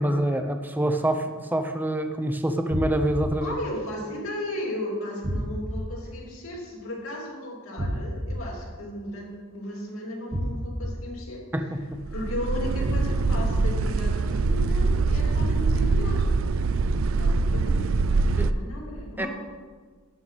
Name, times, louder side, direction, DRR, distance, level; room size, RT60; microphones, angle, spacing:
voice 1, 0.0-3.5 11.5-12.0 18.4-18.5 19.2-19.3, right 1 dB, 10° right, 7 dB, 0.6 m, -26 dB
sound 1, 2.7-3.3 5.2-5.8 7.8-8.3 10.3-10.9 12.8-13.4 15.4-16.0, equal, 35° right, 1.2 m, -28 dB
voice 2, 3.4-11.7 12.1-16.3 17.1-17.9 18.3-19.3, left 1 dB, 75° left, -2 dB, 3.2 m, -35 dB
sound 2, 11.9-18.5, right 3 dB, 65° right, 0.4 m, -23 dB
12.0 x 10.0 x 4.1 m, 1.5 s
head